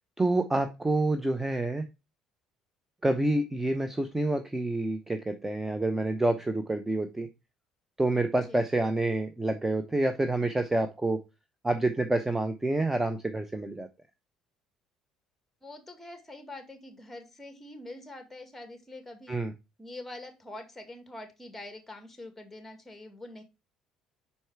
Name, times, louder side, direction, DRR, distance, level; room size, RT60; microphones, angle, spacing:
voice 1, 0.2-1.8 3.0-7.3 8.0-11.2 11.6-13.9 19.3-19.5, right 2 dB, 10° right, 8 dB, 0.7 m, -28 dB
voice 2, 15.6-19.4 19.8-23.4, left 2 dB, 10° left, 6 dB, 1.9 m, -45 dB
5.5 x 4.7 x 4.5 m, 0.26 s
hypercardioid pair, 65°, 2 cm